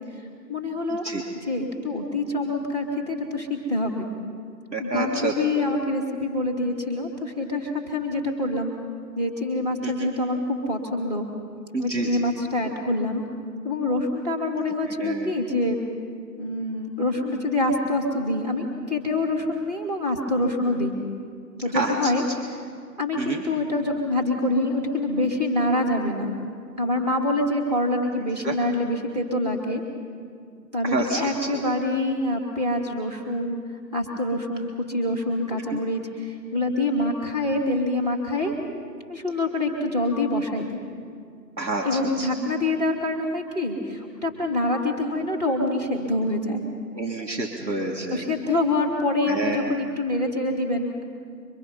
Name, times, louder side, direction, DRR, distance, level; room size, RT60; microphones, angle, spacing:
voice 1, 0.5-1.1 1.4-4.1 4.8-8.7 9.1-11.3 11.8-13.2 13.6-15.8 16.4-21.0 21.6-22.6 23.0-26.3 26.8-29.8 30.7-33.6 33.9-38.6 39.1-40.8 41.8-46.6 48.1-51.0, left 2 dB, 25° right, 1 dB, 2.7 m, -26 dB
voice 2, 4.7-5.3 9.8-9.9 11.7-12.2 15.0-15.3 21.7-22.1 23.2-23.4 28.4-28.5 30.9-31.2 31.5-31.6 35.7-35.8 41.6-42.3 47.0-48.2 49.3-49.6, right 2 dB, 85° right, 0 dB, 3.1 m, -28 dB
27.0 x 24.5 x 5.7 m, 2.2 s
figure-of-eight pair, 170°, 50 cm